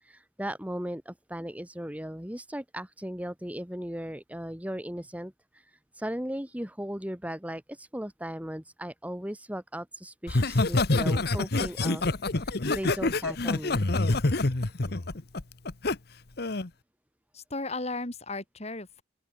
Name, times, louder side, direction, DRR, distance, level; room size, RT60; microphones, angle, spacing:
voice 1, 0.0-12.0 12.4-13.8, equal, 10° right, 2.0 m, -37 dB
Laughter, 10.3-15.9 16.4-16.7, left 2 dB, 60° left, 1.2 m, -26 dB
voice 2, 17.3-19.0, left 2 dB, 35° left, 4.6 m, -35 dB
open air
head